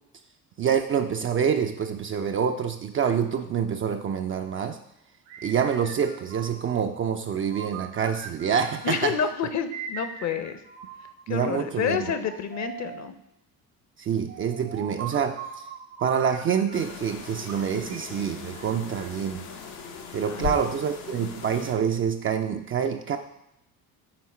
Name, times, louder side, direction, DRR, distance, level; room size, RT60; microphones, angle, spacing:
voice 1, 0.6-4.8 5.4-9.2 11.3-12.1 14.0-15.7 16.0-19.5 20.1-23.2, right 7 dB, 30° right, 6 dB, 0.4 m, -26 dB
sound 1, 5.3-6.9 7.5-9.0 9.7-11.3 12.0-13.2 14.3-17.0 17.5-19.3, right 7 dB, 75° right, 0.9 m, -41 dB
voice 2, 8.8-10.6 11.3-13.1 20.2-20.4, left 7 dB, 40° left, 9 dB, 0.7 m, -29 dB
sound 2, 16.7-21.7, left 6 dB, 80° left, 0.9 m, -38 dB
5.9 x 4.2 x 4.2 m, 0.81 s
hypercardioid pair, 60°, 44 cm